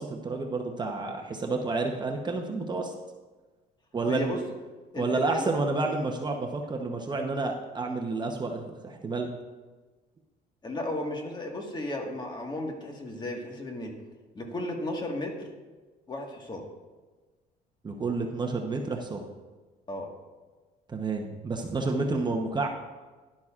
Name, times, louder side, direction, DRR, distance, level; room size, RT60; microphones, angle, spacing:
voice 1, 0.0-2.9 3.9-4.4 4.9-9.3 17.8-19.3 20.9-22.7, right 3 dB, 25° right, 2 dB, 0.9 m, -30 dB
voice 2, 4.1-4.4 4.9-5.6 10.6-13.9 14.3-15.5 16.1-16.6 19.9-20.1, left 1 dB, 25° left, 2 dB, 1.7 m, -34 dB
11.5 x 11.0 x 2.5 m, 1.3 s
cardioid pair, 110°, 17 cm